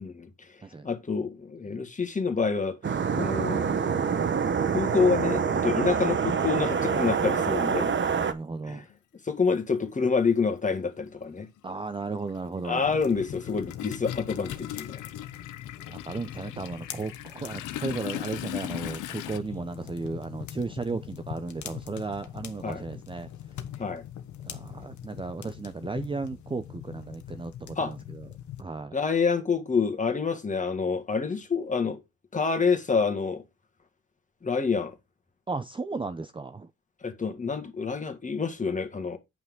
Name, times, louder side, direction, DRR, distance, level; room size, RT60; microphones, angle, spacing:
voice 1, 0.0-0.6 0.8-2.8 3.2-3.8 4.7-8.0 8.6-8.8 9.2-11.5 12.6-15.1 22.6-22.8 23.8-24.0 27.8-27.9 28.9-32.0 32.3-33.4 34.4-35.0 37.0-39.2, left 5 dB, 25° left, 1.8 m, -27 dB
sound 1, 2.8-8.3, right 6 dB, 40° right, 1.0 m, -26 dB
voice 2, 8.1-8.9 11.6-12.9 15.9-23.3 24.4-28.3 28.6-29.0 35.5-36.7, right 3 dB, 15° right, 0.6 m, -35 dB
Toilet flush, 8.9-9.0 10.3-10.4 10.8-19.4, left 14 dB, 90° left, 0.8 m, -39 dB
sound 2, 12.7-28.6, left 11 dB, 70° left, 1.3 m, -42 dB
9.1 x 5.8 x 3.8 m
cardioid pair, 90°, 30 cm